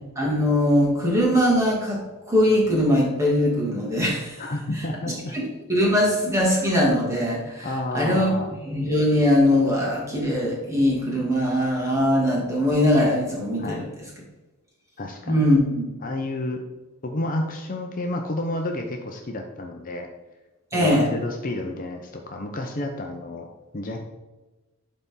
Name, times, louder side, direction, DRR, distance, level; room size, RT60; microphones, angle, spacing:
voice 1, 0.2-4.4 5.3-7.7 7.9-8.3 8.7-13.9 15.3-15.9 20.7-21.1, left 1 dB, 15° right, -5 dB, 2.3 m, -21 dB
voice 2, 4.4-5.4 7.6-8.5 13.6-13.8 15.0-15.5 16.0-16.6 17.0-20.1 20.7-23.5 23.7-24.0, left 1 dB, 40° left, 2 dB, 0.7 m, -30 dB
11.5 x 4.1 x 3.7 m, 1.1 s
head